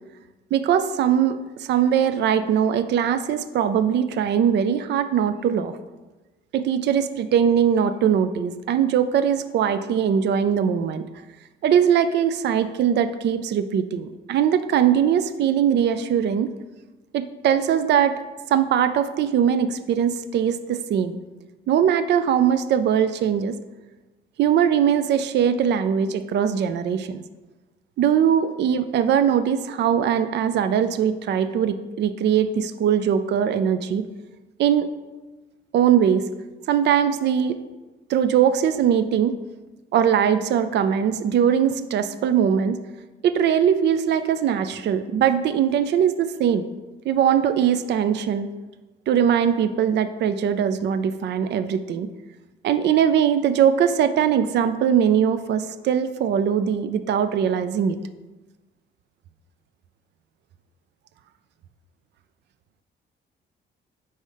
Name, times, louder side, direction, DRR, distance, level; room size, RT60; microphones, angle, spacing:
voice 1, 0.5-5.8 6.5-11.1 11.6-16.5 17.1-18.2 18.5-21.2 21.7-23.6 24.4-27.2 28.0-34.1 34.6-34.9 35.7-36.2 36.7-37.6 38.1-39.4 39.9-42.8 43.2-46.7 47.1-48.5 49.1-52.1 52.6-58.0, right 8 dB, 60° right, 12 dB, 0.4 m, -21 dB
4.8 x 4.2 x 5.5 m, 1.2 s
cardioid pair, 90°, 20 cm